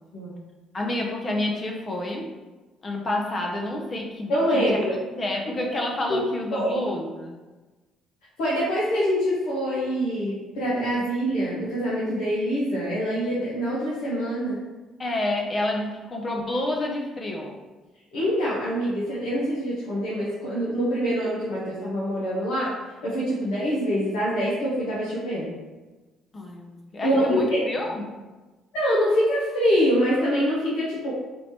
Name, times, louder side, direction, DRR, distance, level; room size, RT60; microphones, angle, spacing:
voice 1, 0.7-2.3 2.8-4.8 5.1-7.4 15.0-17.6 26.3-28.0, left 1 dB, 40° left, 1 dB, 0.7 m, -29 dB
voice 2, 4.3-4.9 6.1-6.2 6.5-6.7 8.4-14.6 18.1-22.7 23.0-25.5 27.0-27.6 28.7-31.1, equal, 80° left, -9 dB, 1.3 m, -25 dB
4.2 x 2.9 x 3.2 m, 1.2 s
hypercardioid pair, 60°, 0 cm